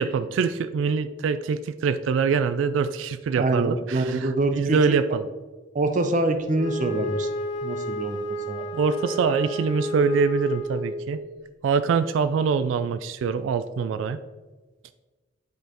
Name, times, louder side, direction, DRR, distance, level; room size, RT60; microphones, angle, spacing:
voice 1, 0.0-5.3 8.7-11.2 11.6-14.2, right 5 dB, 90° right, 13 dB, 0.3 m, -24 dB
voice 2, 3.3-5.0 5.7-7.3 7.6-8.7, right 2 dB, 40° right, 7 dB, 0.5 m, -25 dB
Wind instrument woodwind instrument, 6.5-11.1, right 1 dB, 70° left, 1.3 m, -31 dB
8.2 x 5.2 x 2.9 m, 1.3 s
head